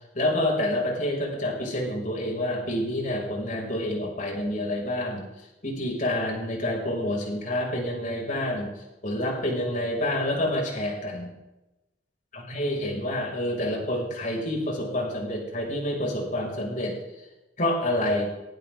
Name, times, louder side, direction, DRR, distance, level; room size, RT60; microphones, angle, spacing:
voice 1, 0.1-5.3 5.6-8.7 9.0-11.3 12.3-17.0 17.6-18.2, left 1 dB, 45° left, -1 dB, 6.2 m, -28 dB
19.0 x 18.5 x 3.8 m, 1.0 s
head